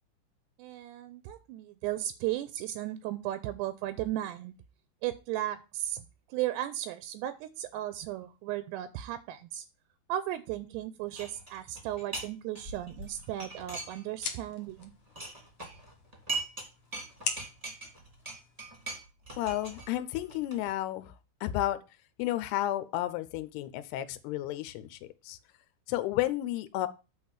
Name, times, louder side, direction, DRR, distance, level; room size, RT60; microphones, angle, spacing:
voice 1, 0.6-4.5 5.0-9.7 10.1-14.9, right 13 dB, 85° right, 13 dB, 2.6 m, -35 dB
sound 1, 11.2-12.3 12.5-14.3 14.6-16.7 16.9-20.7, right 3 dB, 15° right, 1.2 m, -40 dB
sound 2, 12.9-19.0, left 6 dB, 60° left, 1.8 m, -43 dB
voice 2, 19.4-21.1 21.4-21.8 22.2-25.4 25.9-26.9, left 14 dB, 80° left, 12 dB, 2.6 m, -32 dB
8.5 x 4.3 x 7.1 m, 0.30 s
omnidirectional pair, 5.0 m